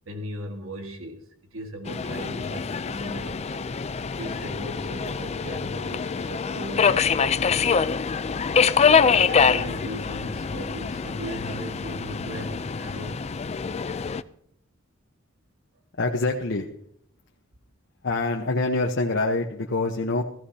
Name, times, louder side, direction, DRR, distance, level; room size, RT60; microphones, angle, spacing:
voice 1, 0.1-7.8 8.8-13.3, right 1 dB, 85° right, 4 dB, 1.7 m, -38 dB
Subway metro underground, 1.9-14.2, left 6 dB, 30° left, 0.4 m, -25 dB
voice 2, 16.0-16.7 18.0-20.2, left 2 dB, 60° left, 2 dB, 1.0 m, -25 dB
16.0 x 15.0 x 2.8 m, 0.68 s
head